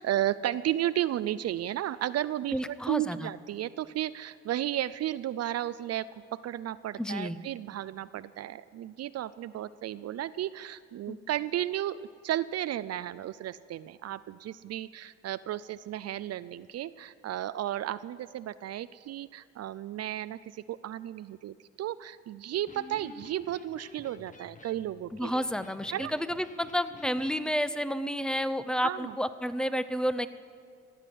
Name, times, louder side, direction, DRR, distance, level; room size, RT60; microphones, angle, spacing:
voice 1, 0.0-25.4 25.9-26.1 28.8-29.1, right 12 dB, 55° right, 16 dB, 0.4 m, -33 dB
voice 2, 2.5-3.3 7.0-7.4 11.1-11.2 25.1-30.3, equal, 5° left, 13 dB, 0.6 m, -30 dB
Electric guitar, 22.5-27.5, left 2 dB, 25° left, 1.1 m, -50 dB
17.5 x 8.1 x 7.7 m, 2.1 s
cardioid pair, 90°, 30 cm